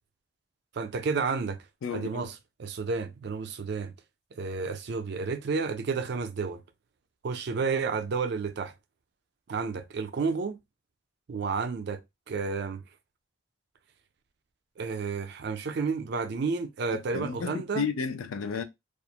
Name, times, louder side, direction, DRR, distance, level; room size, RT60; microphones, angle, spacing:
voice 1, 0.7-1.6 1.9-3.9 4.3-6.6 7.2-8.7 9.5-10.6 11.3-12.0 12.3-12.8 14.8-17.9, right 4 dB, 55° right, 0.4 m, -31 dB
voice 2, 1.8-2.2 17.1-18.6, left 5 dB, 85° left, 0.4 m, -32 dB
2.4 x 2.0 x 2.7 m
head